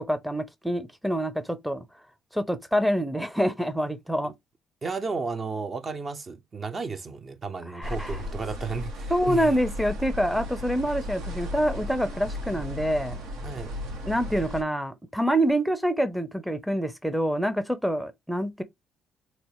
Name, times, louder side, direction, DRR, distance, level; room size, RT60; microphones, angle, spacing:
voice 1, 0.0-1.8 2.3-4.3 7.7-8.2 9.1-13.2 14.0-18.6, equal, ahead, 0.6 m, -26 dB
voice 2, 4.8-9.5 13.4-13.7, right 4 dB, 40° right, 0.6 m, -33 dB
sound 1, 7.8-14.6, left 1 dB, 80° right, 1.0 m, -35 dB
4.0 x 2.0 x 3.0 m
supercardioid pair, 70°, 0 cm